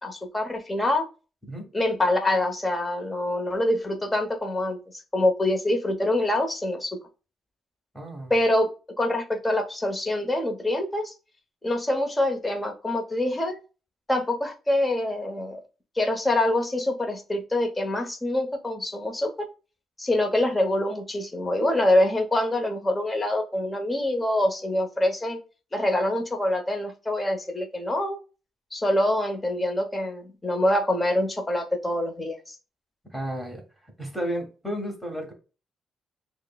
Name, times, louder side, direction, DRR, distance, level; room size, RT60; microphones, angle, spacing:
voice 1, 0.0-1.1 1.7-4.8 5.1-7.0 8.3-8.7 9.0-11.1 11.6-13.6 14.1-15.6 16.0-19.5 20.0-25.4 25.7-28.2 28.7-32.5, left 1 dB, 15° left, 3 dB, 0.8 m, -25 dB
voice 2, 7.9-8.3 33.1-35.3, equal, ahead, 1 dB, 1.5 m, -33 dB
6.2 x 2.1 x 2.3 m, 0.34 s
cardioid pair, 90°, 0 cm